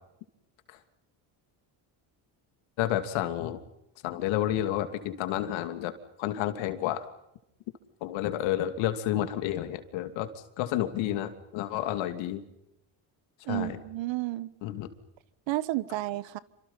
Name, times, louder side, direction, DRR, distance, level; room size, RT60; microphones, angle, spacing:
voice 1, 2.8-3.6 4.0-5.9 6.2-7.0 8.0-10.3 10.6-12.4 13.5-13.8 14.6-14.9, left 12 dB, 85° left, 9 dB, 2.9 m, -30 dB
voice 2, 13.5-14.5 15.5-16.4, right 17 dB, 75° right, 17 dB, 1.5 m, -31 dB
28.5 x 26.0 x 5.7 m, 0.83 s
cardioid pair, 95°, 45 cm